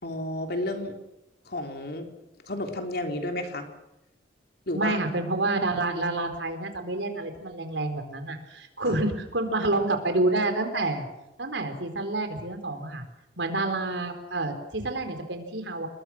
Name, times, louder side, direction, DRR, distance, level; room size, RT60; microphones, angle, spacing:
voice 1, 0.0-1.0 1.5-2.1 2.5-3.7 4.7-5.0 8.8-9.0, left 1 dB, 60° left, 4 dB, 3.5 m, -31 dB
voice 2, 4.7-11.1 11.4-13.0 13.4-15.9, right 2 dB, 85° right, 6 dB, 4.3 m, -28 dB
28.5 x 22.0 x 6.2 m, 0.92 s
head